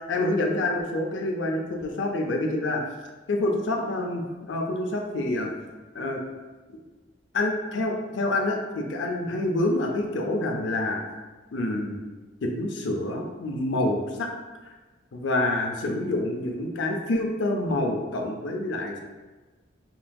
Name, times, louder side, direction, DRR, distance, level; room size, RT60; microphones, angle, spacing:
voice 1, 0.0-2.8 3.3-5.5 5.9-6.2 7.3-11.0 11.5-12.0 12.4-14.3 15.1-19.0, left 2 dB, 70° left, 2 dB, 0.5 m, -27 dB
5.4 x 2.6 x 2.3 m, 1.2 s
head